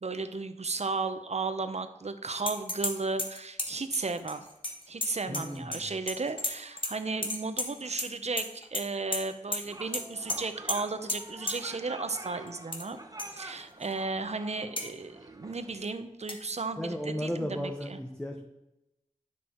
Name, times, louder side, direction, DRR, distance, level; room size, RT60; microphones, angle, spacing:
voice 1, 0.0-4.4 4.9-13.0 13.3-18.0, right 3 dB, 55° right, 10 dB, 0.9 m, -34 dB
sound 1, 2.5-2.9 3.2-5.8 6.1-6.9 7.2-8.1 8.4-8.8 9.1-9.2 9.5-9.6 9.9-10.0 10.3-10.4 10.7-10.8 11.1-11.2 11.5-11.6 12.5-12.8 13.2-13.3 13.8-13.9 14.8-14.9 16.3-16.4, left 2 dB, 40° left, 1.5 m, -32 dB
voice 2, 5.3-5.9 16.8-18.4, equal, 5° left, 1 dB, 1.1 m, -35 dB
sound 2, 9.5-15.9, right 2 dB, 25° right, 1.1 m, -47 dB
10.0 x 6.5 x 4.5 m, 0.91 s
wide cardioid pair, 55°, 13 cm